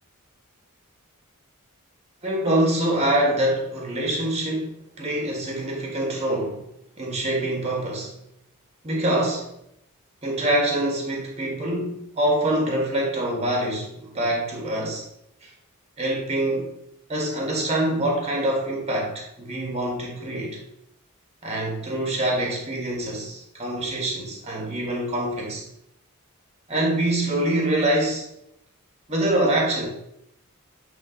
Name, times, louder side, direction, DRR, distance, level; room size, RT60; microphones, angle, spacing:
voice 1, 2.2-6.7 7.0-8.2 8.8-9.5 10.2-15.0 15.4-15.5 16.0-16.7 17.1-20.6 21.4-25.6 26.7-28.3 29.1-29.9, right 1 dB, 30° right, -1 dB, 1.6 m, -25 dB
7.6 x 3.6 x 3.9 m, 0.80 s
head